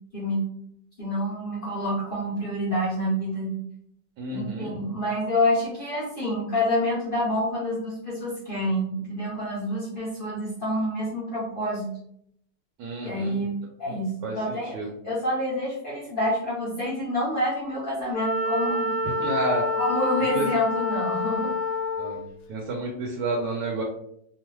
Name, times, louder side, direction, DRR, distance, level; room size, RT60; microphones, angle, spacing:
voice 1, 0.1-0.4 1.0-3.6 4.3-11.9 13.0-14.8 15.0-18.9 19.8-21.5, left 1 dB, 55° left, -7 dB, 0.6 m, -27 dB
voice 2, 4.2-4.9 12.8-13.4 14.2-14.9 19.2-19.6 20.3-20.5 22.0-22.2 22.5-23.8, right 2 dB, 75° right, -1 dB, 1.2 m, -30 dB
Wind instrument woodwind instrument, 18.1-22.3, left 2 dB, 75° left, 1.0 m, -27 dB
3.1 x 2.0 x 3.0 m, 0.72 s
omnidirectional pair, 1.9 m